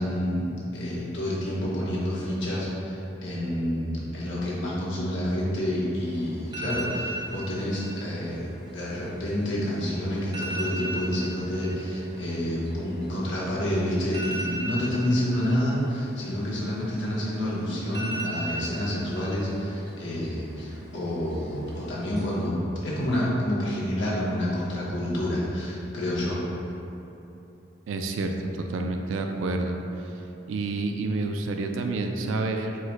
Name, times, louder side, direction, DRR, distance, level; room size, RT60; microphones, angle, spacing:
voice 1, 0.0-26.4, equal, 70° left, -6 dB, 1.0 m, -28 dB
sound 1, 6.0-22.4, right 1 dB, 20° right, 0.6 m, -39 dB
voice 2, 27.9-28.3 28.7-29.8 30.5-32.8, right 3 dB, 80° right, 4 dB, 0.3 m, -28 dB
4.6 x 2.1 x 4.5 m, 2.9 s
head